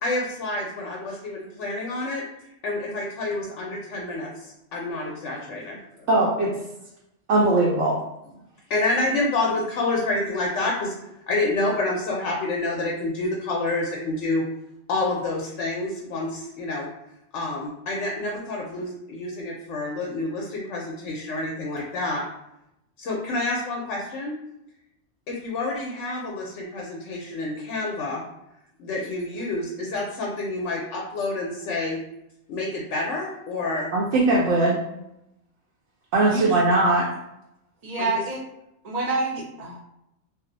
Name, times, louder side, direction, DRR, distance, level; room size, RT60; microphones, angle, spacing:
voice 1, 0.0-2.2 2.6-6.1 8.7-11.0 11.3-14.5 14.9-16.9 17.3-22.2 23.0-24.4 25.3-28.2 28.8-32.0 32.5-33.9 36.2-36.4 38.0-38.2, left 2 dB, 70° left, -2 dB, 0.9 m, -28 dB
voice 2, 6.1-6.6 7.3-8.0 33.9-34.8 36.1-37.1, right 2 dB, 70° right, -4 dB, 0.9 m, -20 dB
voice 3, 37.8-38.4 38.8-39.8, right 2 dB, 40° right, -3 dB, 0.7 m, -27 dB
2.6 x 2.0 x 3.8 m, 0.84 s
omnidirectional pair, 1.4 m